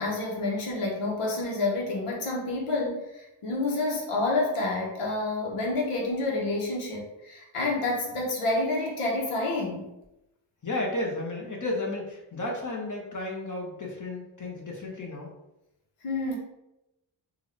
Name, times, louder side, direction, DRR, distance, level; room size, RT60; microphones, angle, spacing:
voice 1, 0.0-9.9 16.0-16.4, left 2 dB, 90° left, -2 dB, 1.1 m, -29 dB
voice 2, 10.6-15.3, left 2 dB, 35° left, -1 dB, 1.3 m, -33 dB
3.7 x 2.6 x 3.2 m, 0.92 s
cardioid pair, 50°, 50 cm